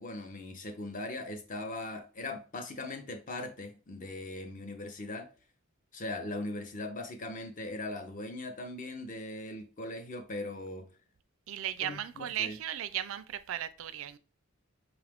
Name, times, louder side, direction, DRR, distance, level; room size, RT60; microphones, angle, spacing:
voice 1, 0.0-5.3 5.9-10.9 11.8-12.6, left 2 dB, 35° left, 0.6 m, -40 dB
voice 2, 11.5-14.2, right 11 dB, 70° right, 0.3 m, -36 dB
5.8 x 2.4 x 3.4 m
head